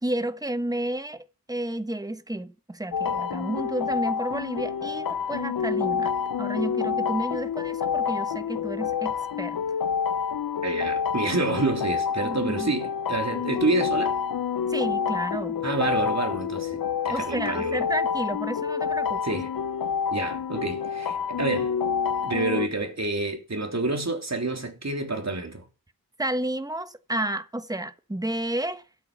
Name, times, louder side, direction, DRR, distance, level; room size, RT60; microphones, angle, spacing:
voice 1, 0.0-6.1 6.4-9.6 12.2-12.7 13.3-13.4 14.7-15.6 17.1-19.2 26.2-28.8, right 1 dB, 10° right, 1.2 m, -31 dB
sound 1, 2.9-22.7, left 7 dB, 80° left, 0.6 m, -28 dB
voice 2, 10.6-14.1 15.6-17.8 19.2-19.5 20.1-21.8 22.2-25.6, right 2 dB, 50° right, 3.3 m, -28 dB
13.0 x 8.4 x 6.2 m
wide cardioid pair, 60°, 35 cm